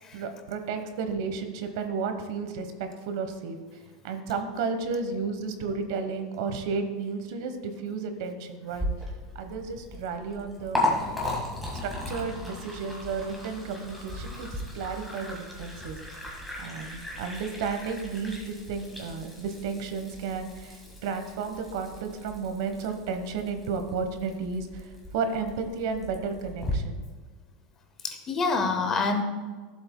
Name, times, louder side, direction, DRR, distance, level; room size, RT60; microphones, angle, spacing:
voice 1, 0.1-3.6 4.0-8.9 9.3-10.8 11.8-16.0 16.6-27.0, right 5 dB, 60° right, 7 dB, 1.1 m, -33 dB
Liquid, 8.7-26.7, left 1 dB, ahead, 1.7 m, -36 dB
voice 2, 28.0-29.2, left 4 dB, 20° left, 5 dB, 0.7 m, -27 dB
15.0 x 7.8 x 2.2 m, 1.5 s
supercardioid pair, 175°, 2 cm